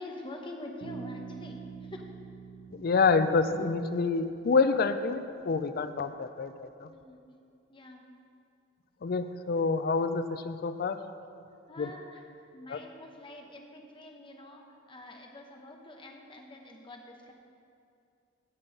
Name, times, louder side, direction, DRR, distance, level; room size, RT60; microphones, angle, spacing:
voice 1, 0.0-2.1 6.9-7.2 7.7-8.1 11.7-17.3, left 1 dB, 25° left, 2 dB, 1.0 m, -46 dB
Bass guitar, 0.8-4.5, right 5 dB, 90° right, 1.0 m, -45 dB
voice 2, 2.7-6.9 9.0-11.0 11.8-11.9 12.7-12.8, left 4 dB, 55° left, 11 dB, 0.4 m, -27 dB
14.5 x 5.4 x 5.3 m, 2.5 s
head